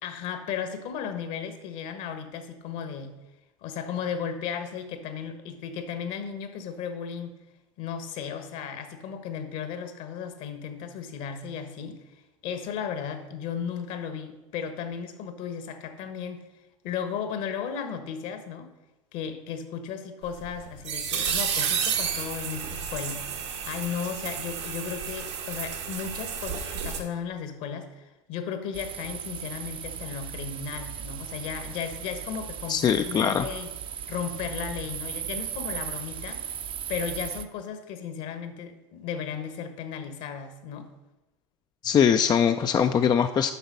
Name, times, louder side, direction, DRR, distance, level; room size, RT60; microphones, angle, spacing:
voice 1, 0.0-3.1 3.6-7.4 7.8-12.0 12.4-16.4 16.8-18.7 19.1-33.7 34.1-36.4 36.9-40.9, left 7 dB, 60° left, 9 dB, 1.3 m, -35 dB
sound 1, 20.3-27.0, right 7 dB, 80° right, 1.5 m, -31 dB
sound 2, 28.7-37.4, right 9 dB, 35° right, 0.6 m, -37 dB
voice 2, 32.7-33.5 41.8-43.5, left 8 dB, 30° left, 8 dB, 0.4 m, -22 dB
8.1 x 5.8 x 5.4 m, 1.0 s
hypercardioid pair, 85°, 15 cm